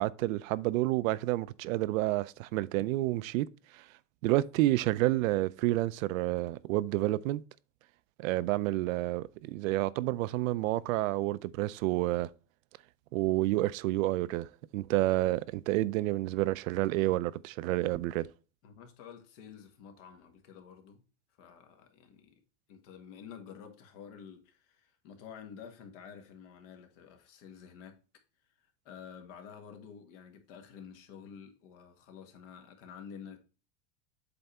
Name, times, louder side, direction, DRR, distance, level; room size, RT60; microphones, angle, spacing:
voice 1, 0.0-3.5 3.7-3.8 4.2-7.4 8.2-12.3 13.1-14.5 14.7-18.3, right 17 dB, 80° right, 0.5 m, -29 dB
voice 2, 18.6-21.0 21.4-22.3 22.7-28.0 28.6-33.4, left 7 dB, 65° left, 1.6 m, -50 dB
7.9 x 3.5 x 4.2 m
supercardioid pair, 140°, 39 cm